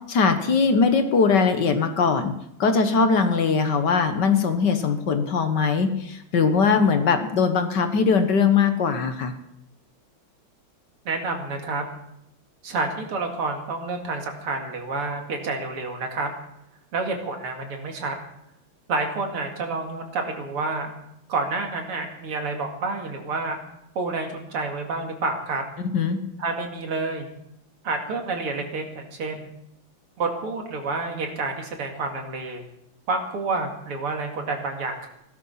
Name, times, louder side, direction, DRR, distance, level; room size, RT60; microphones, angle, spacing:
voice 1, 0.1-2.3 2.6-9.3 25.8-26.2, left 5 dB, 55° left, 7 dB, 1.8 m, -21 dB
voice 2, 11.0-11.8 12.6-16.3 16.9-18.2 18.9-20.9 21.3-23.6 24.0-25.6 26.4-27.3 27.8-29.5 30.2-32.6 33.1-35.1, right 3 dB, 85° right, 3 dB, 3.1 m, -29 dB
16.5 x 12.5 x 5.7 m, 0.79 s
omnidirectional pair, 2.4 m